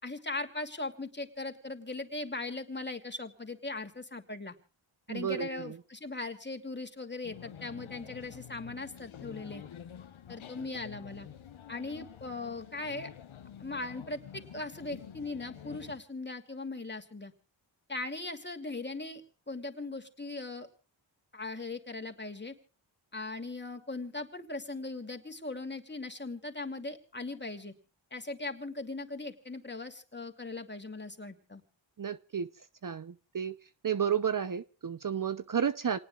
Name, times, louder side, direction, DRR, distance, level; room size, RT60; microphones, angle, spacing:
voice 1, 0.0-4.5 5.1-9.6 10.3-11.3 11.7-13.1 13.6-17.3 17.9-19.2 19.5-20.7 21.3-22.5 23.1-27.7 28.1-31.6, left 2 dB, 20° left, 2.7 m, -39 dB
voice 2, 5.1-5.6 32.0-32.5 32.8-33.6 33.8-36.0, right 8 dB, 45° right, 0.8 m, -32 dB
sound 1, 7.2-16.0, left 9 dB, 80° left, 1.2 m, -48 dB
28.5 x 19.0 x 2.4 m
cardioid pair, 60°, 48 cm